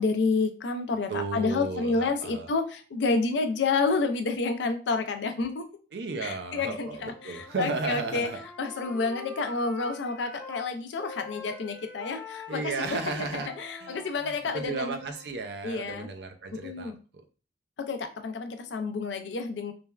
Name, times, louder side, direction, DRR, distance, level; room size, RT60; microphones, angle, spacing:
voice 1, 0.0-5.7 6.2-8.3 8.6-13.0 13.6-15.0 15.6-16.1 16.5-17.0 17.8-19.7, left 4 dB, 80° left, 7 dB, 0.4 m, -29 dB
voice 2, 1.1-2.5 5.9-8.4 12.5-13.5 13.8-17.2, right 3 dB, 70° right, 6 dB, 0.4 m, -34 dB
Wind instrument woodwind instrument, 7.0-10.7 11.0-15.3, left 3 dB, 10° left, 0.4 m, -45 dB
3.2 x 2.1 x 2.3 m, 0.36 s
head